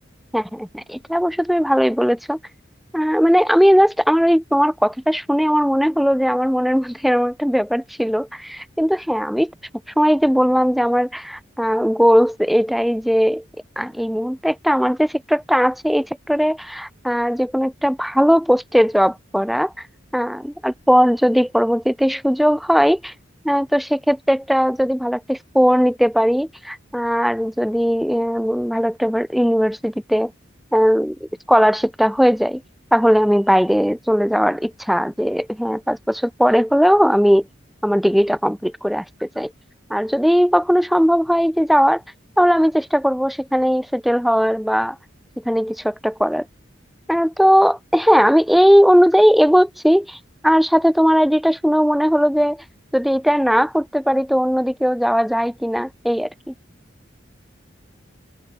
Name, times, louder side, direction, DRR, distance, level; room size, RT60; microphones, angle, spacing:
voice 1, 0.3-2.4 2.9-9.5 10.0-13.4 13.8-19.7 20.1-23.1 23.4-30.3 30.7-32.6 32.9-37.5 37.8-39.5 39.9-42.0 42.4-45.0 45.5-46.4 47.1-50.2 50.4-52.6 52.9-56.5, equal, ahead, 0.5 m, -18 dB
open air
head